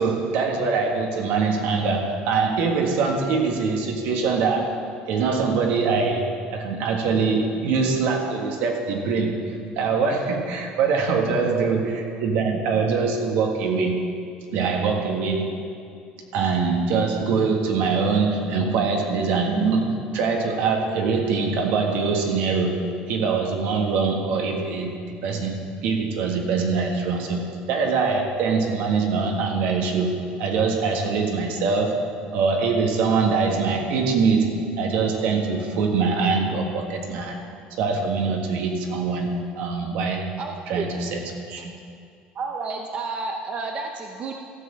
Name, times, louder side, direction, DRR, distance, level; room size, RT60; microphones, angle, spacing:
voice 1, 0.0-4.8 5.1-9.4 9.7-11.9 12.2-14.0 14.5-15.6 16.3-22.8 23.1-32.1 32.3-37.4 37.8-40.3 40.7-41.7, right 4 dB, 75° right, 2 dB, 1.7 m, -23 dB
voice 2, 11.3-11.7 40.4-40.8 42.3-44.3, right 4 dB, 40° right, 3 dB, 0.7 m, -31 dB
14.5 x 5.4 x 7.3 m, 2.3 s
cardioid pair, 135°, 3 cm